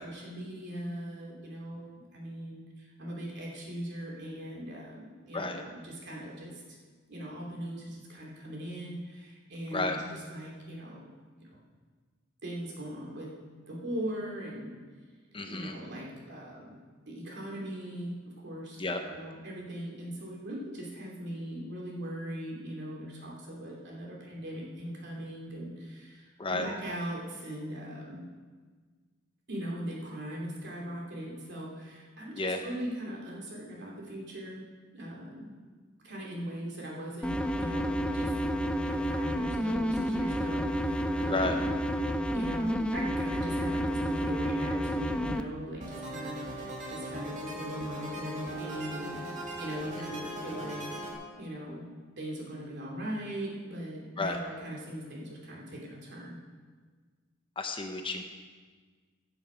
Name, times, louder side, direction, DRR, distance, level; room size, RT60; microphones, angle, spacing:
voice 1, 0.0-6.6 7.1-9.9 10.3-11.1 11.4-11.5 12.4-13.3 13.7-14.7 15.5-16.8 17.1-18.1 18.4-18.8 19.1-28.2 29.5-34.6 34.9-35.5 36.0-38.3 38.9-41.6 42.3-49.3 49.6-51.0 51.4-51.8 52.2-56.4, right 1 dB, 60° right, -3 dB, 2.8 m, -40 dB
voice 2, 15.3-15.8 18.8-19.0 26.4-26.7 32.3-32.6 41.3-41.6 54.2-54.4 57.6-58.2, left 3 dB, 25° left, 5 dB, 0.8 m, -32 dB
sound 1, 37.2-45.4, equal, 5° left, 0.4 m, -30 dB
sound 2, 45.8-51.1, right 1 dB, 40° right, 2.2 m, -39 dB
15.5 x 7.0 x 5.1 m, 1.5 s
head